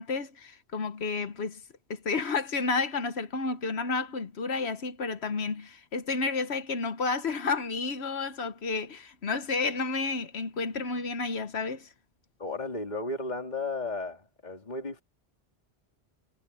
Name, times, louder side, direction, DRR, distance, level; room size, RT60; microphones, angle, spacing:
voice 1, 0.0-1.6 1.9-11.9, left 4 dB, 70° left, 1.4 m, -31 dB
voice 2, 12.4-15.0, left 2 dB, 40° left, 2.9 m, -34 dB
omnidirectional pair, 1.1 m